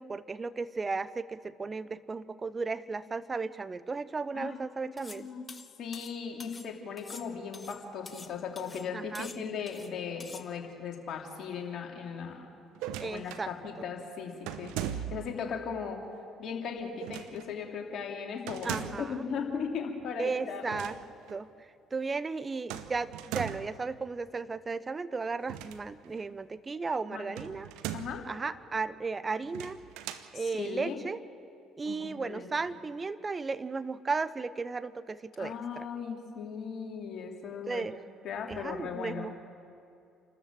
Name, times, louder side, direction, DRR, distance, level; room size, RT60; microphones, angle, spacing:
voice 1, 0.0-5.3 8.9-9.3 13.0-13.5 13.8-13.9 18.6-19.2 20.2-20.9 21.3-21.5 21.9-27.7 28.3-29.8 30.3-31.2 31.8-35.9 37.7-38.0 38.5-39.4, right 4 dB, 30° right, 15 dB, 0.9 m, -35 dB
voice 2, 4.8-5.5 5.8-12.5 13.0-16.0 16.4-20.9 27.1-27.3 27.9-28.2 30.3-31.0 31.8-32.7 35.4-37.8 38.2-39.3, left 6 dB, 55° left, 1 dB, 3.2 m, -38 dB
sound 1, 5.0-5.2 5.5-6.7 7.0-8.3 8.6-8.9 9.1-9.9 10.2-10.4, left 3 dB, 25° left, 1.5 m, -47 dB
sound 2, 12.7-13.5 14.5-15.4 17.0-17.5 18.5-19.2 20.6-21.0 21.3-21.4 22.7-23.8 25.4-26.2 27.4-28.3 29.4-30.3, right 11 dB, 70° right, 1.0 m, -39 dB
29.0 x 13.5 x 7.5 m, 2.6 s
hypercardioid pair, 55°, 0 cm